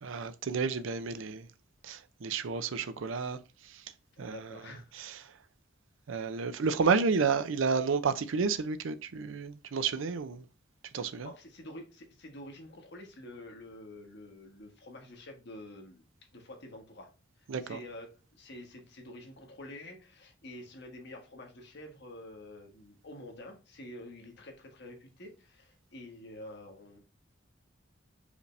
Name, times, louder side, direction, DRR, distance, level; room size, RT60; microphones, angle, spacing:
voice 1, 0.0-1.5 1.8-3.8 4.2-5.4 6.1-10.5 10.9-11.3 17.5-17.8, right 5 dB, 75° right, 0.5 m, -31 dB
voice 2, 4.1-4.9 11.2-16.0 16.3-17.1 17.4-27.0, left 1 dB, 55° left, 1.3 m, -48 dB
5.0 x 3.3 x 2.5 m
head